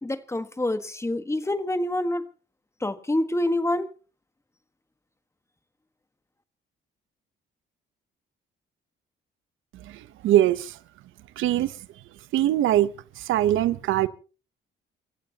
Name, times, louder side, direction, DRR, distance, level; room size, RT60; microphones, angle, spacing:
voice 1, 0.0-2.2 2.8-3.9, left 1 dB, 15° left, 1.5 m, -26 dB
voice 2, 9.8-10.8 11.4-11.7 12.3-12.9 13.2-14.1, right 12 dB, 85° right, 0.9 m, -22 dB
28.5 x 14.5 x 2.9 m
cardioid pair, 90°, 20 cm